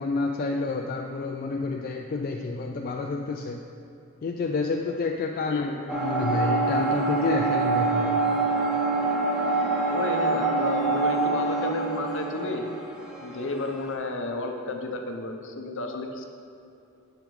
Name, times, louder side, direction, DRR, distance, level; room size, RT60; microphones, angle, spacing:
voice 1, 0.0-3.6 4.2-8.3, left 3 dB, 40° left, 2 dB, 0.3 m, -29 dB
voice 2, 5.5-5.8 9.9-12.7 13.2-16.2, left 2 dB, 60° left, 4 dB, 0.7 m, -32 dB
sound 1, 5.9-13.9, right 3 dB, 5° right, 0.7 m, -25 dB
12.0 x 5.0 x 3.2 m, 2.8 s
head